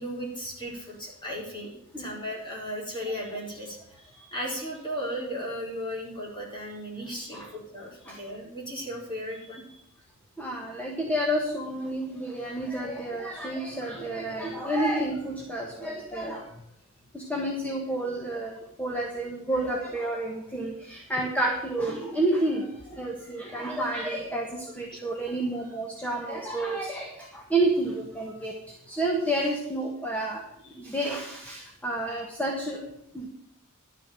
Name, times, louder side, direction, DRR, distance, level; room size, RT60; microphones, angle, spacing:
voice 1, 0.0-9.8 24.9-25.1 30.7-30.8, equal, 20° left, -3 dB, 4.0 m, -36 dB
voice 2, 10.4-16.5 17.1-30.4 30.8-32.8 33.1-33.3, right 1 dB, 5° left, -1 dB, 1.6 m, -30 dB
11.5 x 6.7 x 9.1 m, 0.75 s
head